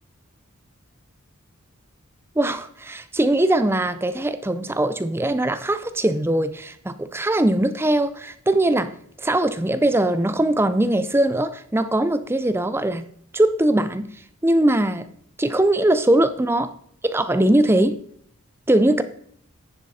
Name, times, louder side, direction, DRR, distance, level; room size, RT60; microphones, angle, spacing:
voice 1, 2.4-13.0 13.3-14.1 14.4-15.1 15.4-16.7 17.0-18.0 18.7-19.0, right 1 dB, 10° right, 12 dB, 0.4 m, -21 dB
10.0 x 7.4 x 4.2 m, 0.66 s
head